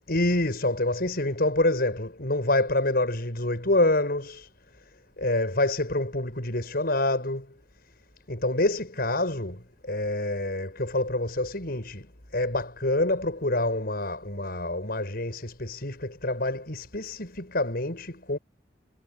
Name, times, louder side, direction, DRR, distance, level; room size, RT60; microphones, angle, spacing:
voice 1, 0.1-4.5 5.2-7.5 8.3-18.4, left 2 dB, 55° left, 7.4 m, -27 dB
head